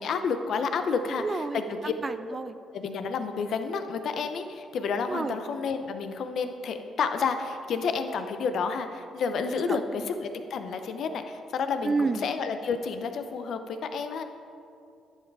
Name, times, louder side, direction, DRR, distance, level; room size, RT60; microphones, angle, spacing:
voice 1, 0.0-1.9 2.7-14.2, left 5 dB, 65° left, 8 dB, 0.7 m, -30 dB
voice 2, 1.2-2.5 5.1-5.4 11.8-12.2, right 3 dB, 30° right, 12 dB, 0.5 m, -30 dB
10.5 x 7.4 x 4.7 m, 2.4 s
cardioid pair, 90°, 0 cm